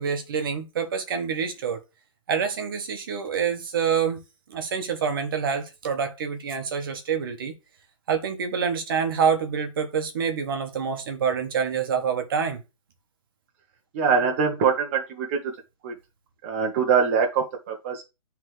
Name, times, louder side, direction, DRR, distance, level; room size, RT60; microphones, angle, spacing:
voice 1, 0.0-1.8 2.3-4.2 4.5-7.5 8.1-12.6, right 6 dB, 45° right, 1.2 m, -26 dB
voice 2, 13.9-15.5 15.8-15.9 16.4-18.0, right 6 dB, 25° right, 0.9 m, -23 dB
9.6 x 3.5 x 3.2 m
hypercardioid pair, 170°, 16 cm